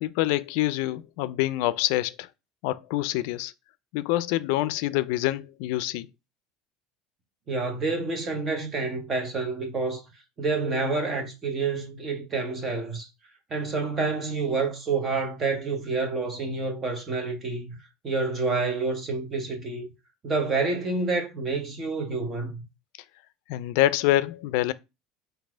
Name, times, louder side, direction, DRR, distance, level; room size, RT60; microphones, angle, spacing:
voice 1, 0.0-2.3 2.6-3.5 3.9-6.1 23.5-24.7, left 15 dB, 70° left, 0.4 m, -26 dB
voice 2, 7.5-10.0 10.4-13.1 13.5-19.9 20.2-22.6, right 3 dB, 25° right, 0.9 m, -28 dB
4.1 x 2.7 x 4.4 m
cardioid pair, 165°, 0 cm